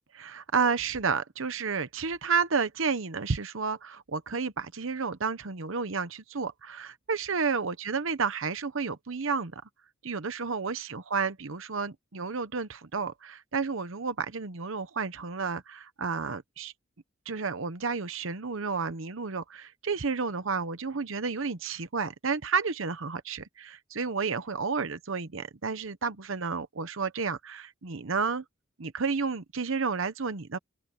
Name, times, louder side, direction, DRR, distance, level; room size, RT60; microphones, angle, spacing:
voice 1, 0.1-9.6 10.0-16.7 17.3-28.4 28.8-30.6, right 5 dB, 75° right, 0.9 m, -31 dB
open air
head